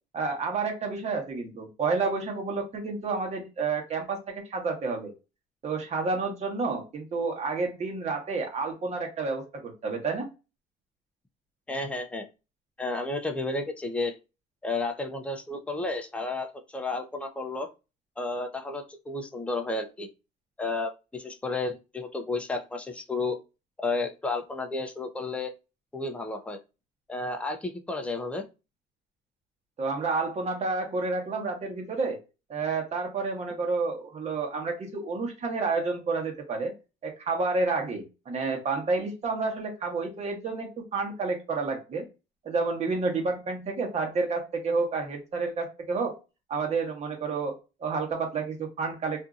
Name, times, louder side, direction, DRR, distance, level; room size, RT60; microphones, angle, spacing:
voice 1, 0.1-5.1 5.6-10.3 29.8-32.2 32.5-36.7 37.0-42.1 42.4-46.1 46.5-49.3, right 4 dB, 40° right, 2 dB, 1.1 m, -30 dB
voice 2, 11.7-12.3 12.8-14.1 14.6-17.7 18.2-20.1 20.6-23.4 23.8-25.5 25.9-26.6 27.1-28.4, left 3 dB, 5° left, 4 dB, 0.5 m, -32 dB
2.7 x 2.6 x 2.4 m, 0.28 s
cardioid pair, 110°, 17 cm